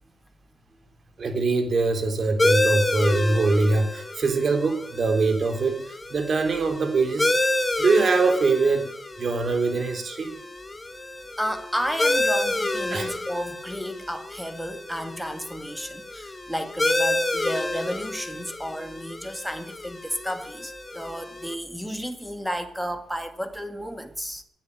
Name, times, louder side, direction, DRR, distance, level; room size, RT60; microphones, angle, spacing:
voice 1, 1.2-8.9 9.2-10.4 12.9-13.1, right 3 dB, 50° right, 3.5 m, -23 dB
sound 1, 2.4-21.5, left 1 dB, 20° left, 1.3 m, -29 dB
voice 2, 11.4-24.4, equal, ahead, 2.1 m, -32 dB
12.0 x 9.3 x 9.8 m
cardioid pair, 75°, 0 cm